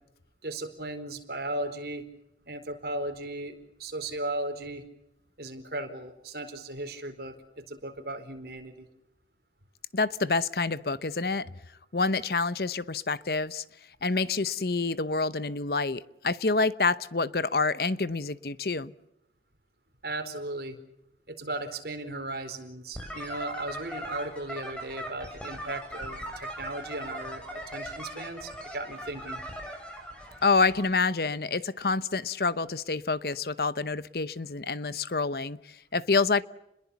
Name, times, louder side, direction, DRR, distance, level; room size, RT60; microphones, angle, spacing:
voice 1, 0.4-2.0 2.5-4.8 5.4-8.9 20.0-20.8 21.3-29.4, right 2 dB, 60° right, 4.4 m, -36 dB
voice 2, 9.9-11.5 11.9-13.6 14.0-18.9 30.4-36.4, left 4 dB, 55° left, 0.9 m, -27 dB
sound 1, 22.9-30.8, equal, 5° left, 6.9 m, -40 dB
30.0 x 21.5 x 7.1 m
head